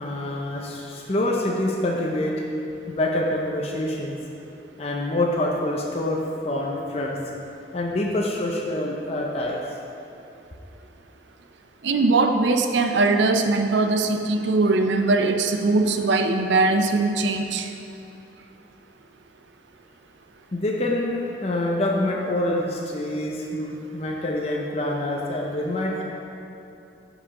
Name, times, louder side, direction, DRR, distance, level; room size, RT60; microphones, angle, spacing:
voice 1, 0.0-2.4 2.9-4.2 4.8-7.3 7.7-9.6 20.5-26.0, left 1 dB, 35° left, -2 dB, 0.6 m, -26 dB
voice 2, 11.8-17.7, right 3 dB, 70° right, 6 dB, 0.5 m, -21 dB
10.5 x 4.9 x 3.7 m, 2.7 s
head